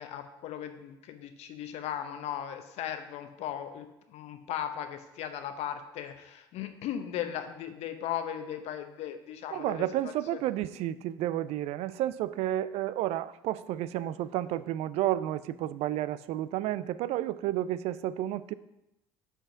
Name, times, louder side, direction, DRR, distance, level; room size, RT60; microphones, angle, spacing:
voice 1, 0.0-10.4, left 10 dB, 60° left, 8 dB, 0.8 m, -37 dB
voice 2, 9.5-18.5, right 13 dB, 55° right, 17 dB, 0.4 m, -31 dB
5.3 x 5.0 x 5.8 m, 0.90 s
hypercardioid pair, 60°, 13 cm